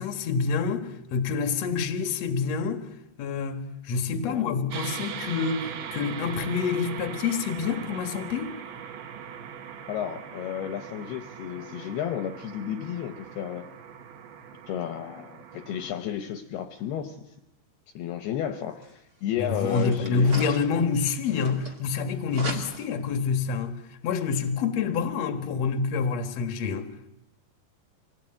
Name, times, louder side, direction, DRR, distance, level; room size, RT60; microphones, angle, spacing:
voice 1, 0.0-2.8 3.2-8.6 19.4-23.8 24.0-26.9, left 5 dB, 55° left, 1.9 m, -27 dB
sound 1, 4.7-15.9, right 8 dB, 65° right, 3.2 m, -40 dB
voice 2, 9.9-13.7 14.7-17.2 18.0-20.6, left 9 dB, 70° left, 2.7 m, -32 dB
sound 2, 18.8-18.9 19.5-22.0 22.3-23.1, right 2 dB, 30° right, 1.8 m, -38 dB
26.0 x 18.5 x 8.9 m
omnidirectional pair, 5.3 m